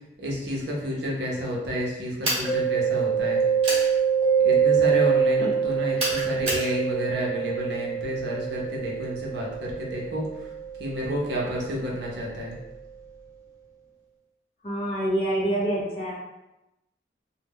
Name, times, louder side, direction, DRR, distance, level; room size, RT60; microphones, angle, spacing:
voice 1, 0.2-3.4 4.4-9.5 9.8-10.2 10.8-12.6, equal, 70° right, -3 dB, 0.6 m, -30 dB
sound 1, 2.2-2.5 3.6-3.9 6.0-6.7, right 1 dB, 35° right, 0.8 m, -27 dB
Mallet percussion, 2.5-12.0, right 7 dB, 15° right, 0.4 m, -25 dB
voice 2, 14.6-16.1, right 1 dB, 35° left, -6 dB, 0.8 m, -26 dB
2.1 x 2.0 x 3.5 m, 0.95 s
head